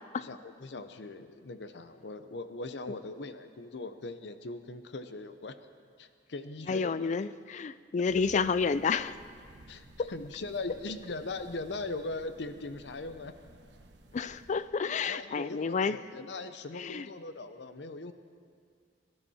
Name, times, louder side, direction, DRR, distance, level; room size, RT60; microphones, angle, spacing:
voice 1, 0.2-5.6 6.0-7.2 9.7-13.3 15.0-18.1, left 3 dB, 75° left, 10 dB, 0.7 m, -40 dB
voice 2, 6.7-9.1 10.0-10.1 14.1-16.0 16.8-17.1, left 5 dB, 45° left, 15 dB, 0.4 m, -30 dB
sound 1, 8.0-14.7, right 1 dB, 85° right, 1.1 m, -55 dB
21.5 x 12.0 x 4.3 m, 2.1 s
head